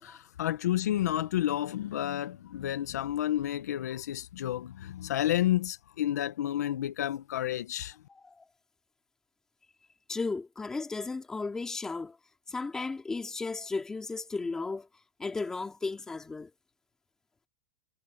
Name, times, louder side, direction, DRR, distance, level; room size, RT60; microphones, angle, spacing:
voice 1, 0.0-8.0, left 12 dB, 70° left, 1.1 m, -30 dB
voice 2, 8.1-8.4 10.1-12.2 12.5-14.9 15.2-16.5, left 3 dB, 5° left, 2.5 m, -35 dB
supercardioid pair, 180°, 9 cm